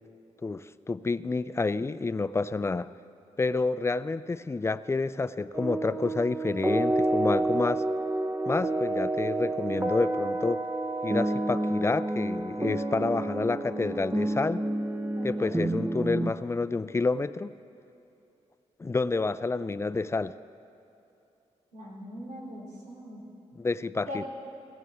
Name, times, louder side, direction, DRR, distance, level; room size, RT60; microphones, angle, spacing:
voice 1, 0.4-2.9 3.4-7.8 8.5-10.6 11.0-14.6 15.2-17.5 18.8-20.4 23.6-24.2, left 3 dB, 20° left, 15 dB, 0.4 m, -29 dB
sound 1, 5.5-16.3, right 1 dB, 15° right, 0.7 m, -29 dB
voice 2, 15.2-15.6 21.7-23.2 24.1-24.3, equal, 75° right, -4 dB, 3.0 m, -41 dB
17.5 x 16.5 x 3.5 m, 2.9 s
cardioid pair, 70°, 13 cm